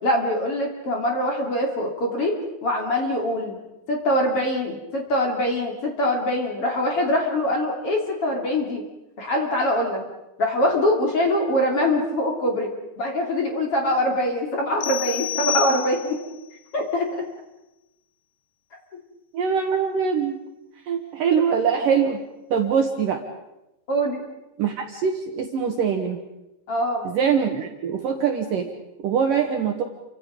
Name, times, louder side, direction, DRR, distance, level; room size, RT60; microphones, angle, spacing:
voice 1, 0.0-3.6 3.9-8.8 9.2-10.0 10.4-12.7 13.0-16.2 16.7-17.2 23.9-24.2 26.7-27.1, left 1 dB, 35° left, 1 dB, 3.5 m, -23 dB
sound 1, 14.8-16.3, left 10 dB, 70° left, 3.0 m, -28 dB
voice 2, 19.3-20.4 20.9-22.2 22.5-23.2 24.6-26.2 27.0-28.7 29.0-29.8, right 7 dB, 60° right, 3 dB, 2.6 m, -23 dB
30.0 x 25.5 x 5.3 m, 0.94 s
omnidirectional pair, 5.3 m